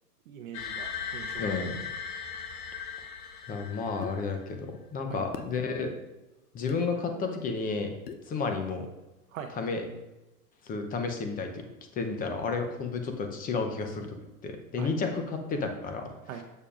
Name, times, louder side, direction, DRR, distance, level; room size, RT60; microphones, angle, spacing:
voice 1, 0.3-1.6 5.1-5.3 9.3-9.5 14.8-14.9 16.3-16.4, right 8 dB, 60° right, 4 dB, 0.8 m, -41 dB
sound 1, 0.5-4.3, left 6 dB, 60° left, 1.2 m, -38 dB
voice 2, 1.4-1.8 3.5-5.9 6.5-7.9 8.3-8.9 9.6-9.9 10.6-11.6 11.9-14.1 14.4-16.1, left 4 dB, 20° left, 4 dB, 0.7 m, -31 dB
sound 2, 4.0-4.2 5.3-5.5 6.7-6.8 8.1-8.3, left 7 dB, 90° left, 0.8 m, -40 dB
7.2 x 6.5 x 2.5 m, 1.0 s
hypercardioid pair, 125°, 46 cm